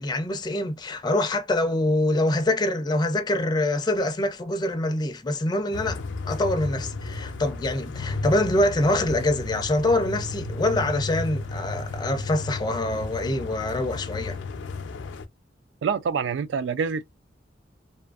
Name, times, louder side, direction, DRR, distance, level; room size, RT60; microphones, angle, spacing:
voice 1, 0.0-6.0 6.3-14.4, left 1 dB, 25° left, 0.4 m, -25 dB
sound 1, 5.7-15.2, left 3 dB, 85° left, 0.4 m, -33 dB
voice 2, 15.8-17.0, right 6 dB, 80° right, 0.3 m, -26 dB
2.5 x 2.4 x 2.3 m
head